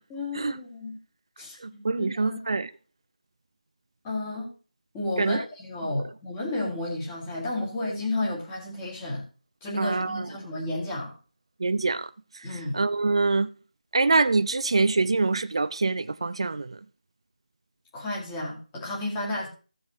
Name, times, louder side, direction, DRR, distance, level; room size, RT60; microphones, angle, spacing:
voice 1, 0.1-1.0 1.4-2.4 4.0-4.5 4.9-9.2 9.6-11.1 12.4-12.8 17.9-19.5, left 2 dB, 10° left, 1.9 m, -32 dB
voice 2, 1.6-2.7 5.2-5.4 5.8-6.0 9.8-10.3 11.6-13.5 13.9-16.8, right 3 dB, 40° right, 0.5 m, -25 dB
15.5 x 7.3 x 3.1 m
figure-of-eight pair, 170°, 5 cm